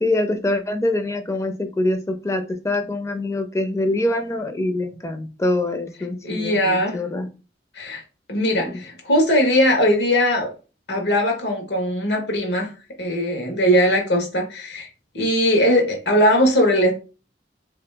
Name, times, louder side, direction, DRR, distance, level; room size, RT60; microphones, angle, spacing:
voice 1, 0.0-7.3 8.5-8.8, left 2 dB, 15° left, 7 dB, 0.5 m, -24 dB
voice 2, 6.2-7.0 7.7-8.0 8.3-10.5 10.9-12.7 13.0-14.9 15.1-16.9, equal, 80° left, 2 dB, 1.4 m, -19 dB
3.2 x 2.9 x 3.4 m, 0.33 s
head